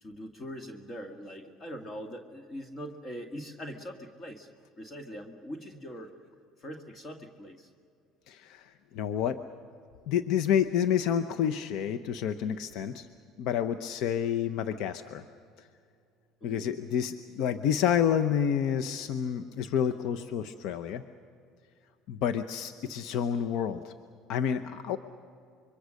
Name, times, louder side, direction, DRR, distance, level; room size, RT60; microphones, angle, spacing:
voice 1, 0.0-4.5 4.8-6.1 6.6-7.7 16.4-16.8, equal, 30° left, 5 dB, 2.0 m, -42 dB
voice 2, 8.3-9.4 10.1-13.1 13.4-15.2 16.4-21.0 22.1-23.9 24.3-25.0, left 8 dB, 70° left, 10 dB, 0.8 m, -29 dB
26.0 x 23.5 x 6.6 m, 2.3 s
supercardioid pair, 95°, 0 cm